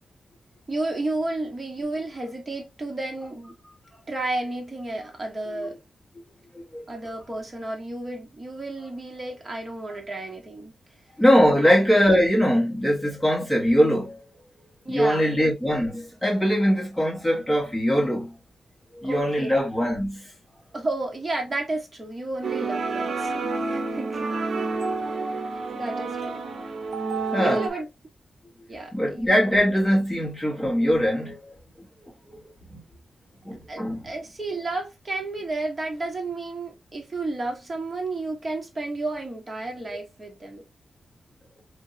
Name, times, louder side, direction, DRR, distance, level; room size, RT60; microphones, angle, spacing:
voice 1, 0.7-3.5 4.1-5.8 6.9-10.7 11.6-11.8 14.8-15.4 19.0-19.7 20.7-24.3 25.7-26.5 27.4-27.9 28.7-29.7 33.7-40.6, right 2 dB, 25° right, 1.2 m, -32 dB
voice 2, 11.2-14.1 14.9-18.3 18.9-20.3 27.3-27.6 28.9-31.5 32.0-32.4 32.7-32.8 33.4-34.0, equal, 5° left, 1.7 m, -22 dB
sound 1, 22.4-27.7, right 3 dB, 65° right, 0.6 m, -29 dB
3.6 x 2.8 x 2.6 m
wide cardioid pair, 135°, 0 cm